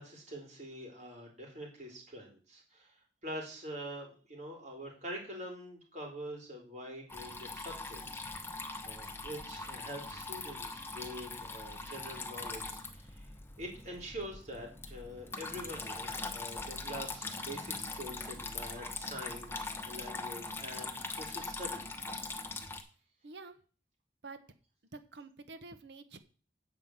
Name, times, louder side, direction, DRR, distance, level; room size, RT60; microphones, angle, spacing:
voice 1, 0.0-2.9 3.2-8.6 8.8-13.3 13.6-22.0, equal, 40° right, 0 dB, 3.8 m, -45 dB
Water tap faucet / Trickle dribble, 7.1-22.8, left 3 dB, 15° left, 0.9 m, -41 dB
voice 2, 23.2-23.6 24.2-24.4 24.9-26.2, right 3 dB, 70° right, 10 dB, 0.9 m, -48 dB
8.2 x 5.4 x 7.7 m, 0.39 s
head